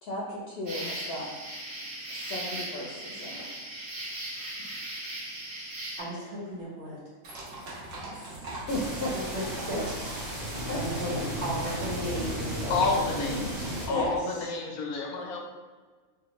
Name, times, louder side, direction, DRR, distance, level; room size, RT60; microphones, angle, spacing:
voice 1, 0.0-1.3 2.1-3.4 8.1-9.1 10.7-10.8 13.9-14.1, left 1 dB, 60° left, -3 dB, 0.6 m, -35 dB
sound 1, 0.7-6.0, right 1 dB, 90° right, 1.4 m, -38 dB
voice 2, 6.0-7.0 7.3-7.5 9.2-10.2 10.7-11.1 11.4-12.7 13.2-13.3 13.9-14.1, right 1 dB, 55° right, -7 dB, 1.3 m, -35 dB
sound 2, 7.2-14.2, right 1 dB, 70° right, 1.1 m, -43 dB
sound 3, 8.7-13.9, equal, 30° right, 0.9 m, -34 dB
voice 3, 12.7-15.5, left 3 dB, 90° left, 1 dB, 1.0 m, -30 dB
3.2 x 2.4 x 2.9 m, 1.4 s
omnidirectional pair, 1.5 m